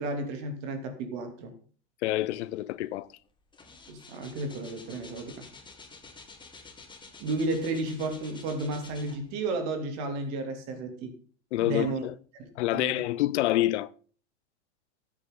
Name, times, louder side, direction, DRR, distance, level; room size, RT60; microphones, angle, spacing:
voice 1, 0.0-1.5 3.9-5.5 7.2-11.1 11.6-12.0 12.4-13.0, right 2 dB, 55° right, 2.9 m, -33 dB
voice 2, 2.0-3.1 11.5-12.1 12.6-13.9, left 15 dB, 80° left, 0.7 m, -27 dB
sound 1, 2.7-2.9 3.2-9.5 10.1-10.2, left 4 dB, 15° left, 2.0 m, -50 dB
13.5 x 8.7 x 3.8 m
supercardioid pair, 120°, 34 cm